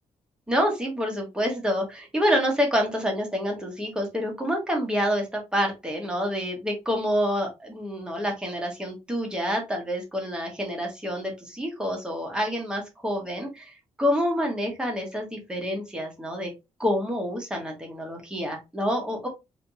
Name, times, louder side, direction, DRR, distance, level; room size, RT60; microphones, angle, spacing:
voice 1, 0.5-13.7 14.0-16.5 16.8-19.3, equal, 5° right, 0 dB, 1.2 m, -27 dB
3.4 x 2.9 x 2.7 m, 0.23 s
wide cardioid pair, 155°, 12 cm